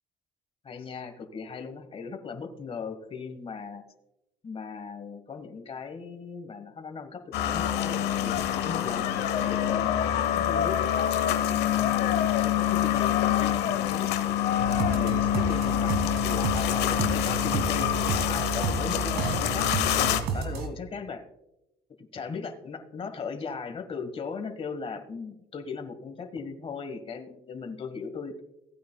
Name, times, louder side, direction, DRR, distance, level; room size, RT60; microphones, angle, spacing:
voice 1, 0.6-3.8 4.4-8.4 8.6-11.1 11.8-14.1 14.6-17.9 18.2-19.7 20.3-21.2 22.0-28.4, left 5 dB, 35° left, 6 dB, 1.2 m, -37 dB
sound 1, 7.3-20.2, left 11 dB, 80° left, 0.9 m, -26 dB
sound 2, 14.6-20.7, right 6 dB, 80° right, 2.0 m, -31 dB
16.5 x 9.3 x 2.2 m, 0.89 s
cardioid pair, 110°, 17 cm